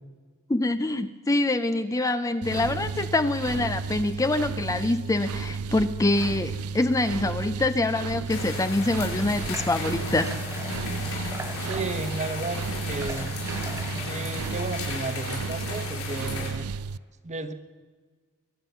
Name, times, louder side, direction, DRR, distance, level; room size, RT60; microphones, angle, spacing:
voice 1, 0.5-10.3, left 2 dB, 15° left, 10 dB, 0.5 m, -25 dB
sound 1, 2.4-17.0, right 5 dB, 90° right, 0.4 m, -33 dB
Water / Water tap faucet, 8.2-15.7, right 2 dB, 15° right, 0.8 m, -43 dB
sound 2, 8.3-16.5, left 3 dB, 75° left, 6.3 m, -35 dB
voice 2, 11.7-12.6 12.9-13.4 14.0-16.7 17.2-17.5, right 3 dB, 35° right, 9 dB, 1.2 m, -33 dB
23.0 x 9.0 x 6.9 m, 1.5 s
head